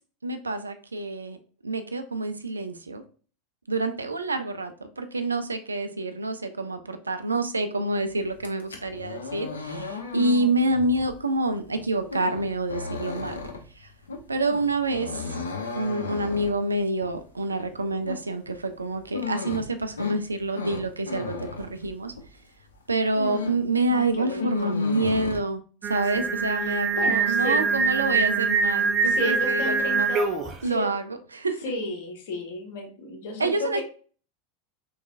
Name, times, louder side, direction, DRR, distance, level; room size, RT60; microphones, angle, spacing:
voice 1, 0.2-1.4 1.6-3.0 3.7-13.4 13.8-13.9 14.3-15.4 15.7-22.1 22.9-30.1 30.6-31.0 31.3-31.6 33.4-33.8, right 2 dB, 80° right, 8 dB, 0.4 m, -27 dB
sound 1, 8.3-22.4 22.7-23.7 24.0-25.4, left 4 dB, 75° left, 0.6 m, -35 dB
voice 2, 23.9-24.7 26.1-27.6 29.0-30.9 31.6-33.8, left 2 dB, 60° left, 2 dB, 1.0 m, -34 dB
Singing, 25.8-30.6, right 5 dB, 35° right, 0.5 m, -24 dB
3.5 x 3.1 x 2.4 m, 0.40 s
figure-of-eight pair, 85°, 0 cm